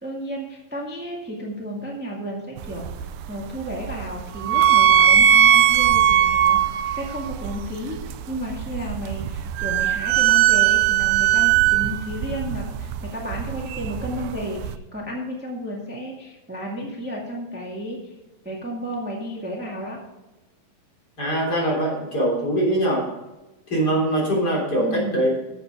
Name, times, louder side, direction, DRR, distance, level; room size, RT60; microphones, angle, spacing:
voice 1, 0.0-8.0 8.3-18.1 18.4-20.0 24.8-25.3, equal, 10° right, -2 dB, 0.5 m, -32 dB
sound 1, 2.6-14.8, right 10 dB, 85° right, 2.5 m, -20 dB
voice 2, 21.2-23.1 23.7-25.3, right 1 dB, 30° left, -3 dB, 3.7 m, -22 dB
11.5 x 7.6 x 4.9 m, 1.1 s
omnidirectional pair, 4.1 m